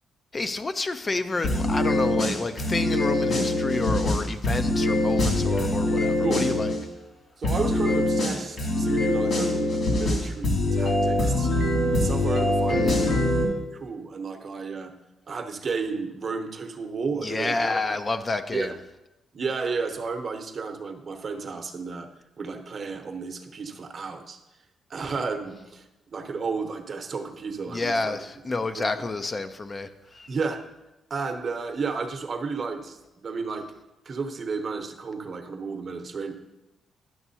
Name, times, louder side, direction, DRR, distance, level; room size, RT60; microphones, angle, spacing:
voice 1, 0.3-6.7 12.7-13.1 17.2-18.7 27.7-30.3, left 3 dB, 30° left, 9 dB, 0.4 m, -29 dB
sound 1, 1.4-6.8 7.4-13.4, left 1 dB, 60° left, 2.4 m, -24 dB
voice 2, 7.4-11.5 11.9-13.1 13.7-14.9 15.3-17.8 18.5-18.7 19.3-22.1 22.4-24.4 24.9-25.8 26.1-28.2 28.7-29.1 30.3-30.6 31.1-33.7 34.0-36.3, right 4 dB, 50° right, 5 dB, 0.8 m, -32 dB
11.0 x 6.0 x 2.8 m, 0.97 s
cardioid pair, 80°, 0 cm